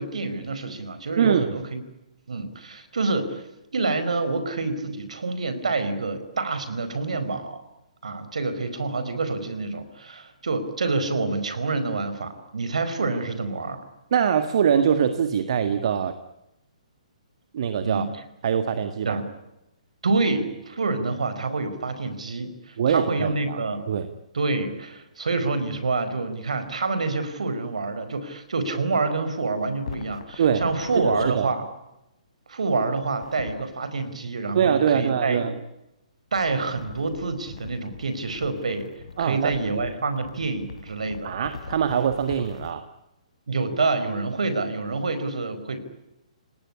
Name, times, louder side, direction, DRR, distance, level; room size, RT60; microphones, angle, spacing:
voice 1, 0.0-1.8 2.3-3.4 3.7-7.6 8.0-13.8 17.8-18.1 19.0-19.3 20.0-23.8 24.3-31.7 32.5-35.5 36.3-38.9 39.2-41.3 43.5-45.8, right 3 dB, 65° right, 11 dB, 4.9 m, -27 dB
voice 2, 1.2-1.5 14.1-16.1 17.5-18.1 18.4-19.2 22.8-23.6 23.9-24.1 30.4-30.6 31.0-31.5 34.5-35.5 39.2-39.5 41.2-42.9, right 8 dB, 50° right, 10 dB, 1.8 m, -23 dB
sound 1, 29.8-31.3 33.0-33.7 36.3-42.7, left 5 dB, 60° left, 3.3 m, -42 dB
30.0 x 19.0 x 9.9 m, 0.90 s
figure-of-eight pair, 130°, 4 cm